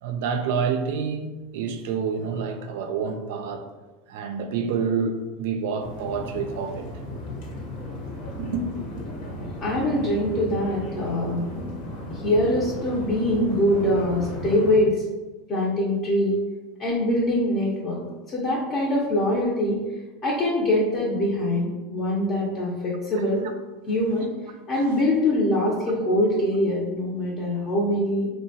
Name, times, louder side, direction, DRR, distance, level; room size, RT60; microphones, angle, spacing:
voice 1, 0.0-3.7 4.1-6.9 8.4-8.6 23.1-23.2 24.8-24.9, right 6 dB, 75° right, 0.3 m, -28 dB
sound 1, 5.8-14.8, left 1 dB, 70° left, 0.9 m, -35 dB
voice 2, 9.4-11.4 12.1-15.0 15.5-16.4 16.8-18.0 18.3-19.8 20.2-23.4 23.9-24.3 24.7-28.3, left 1 dB, 40° left, 0.6 m, -23 dB
2.8 x 2.1 x 2.7 m
supercardioid pair, 120°, 0 cm